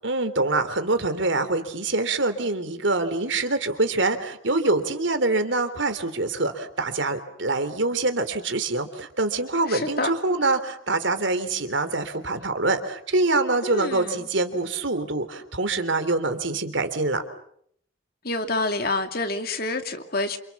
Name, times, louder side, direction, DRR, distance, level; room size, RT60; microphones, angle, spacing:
voice 1, 0.0-17.2, right 2 dB, 65° right, 3.3 m, -25 dB
voice 2, 9.7-10.1 13.6-14.2 18.2-20.4, left 2 dB, 50° left, 2.6 m, -27 dB
28.5 x 28.0 x 7.3 m
head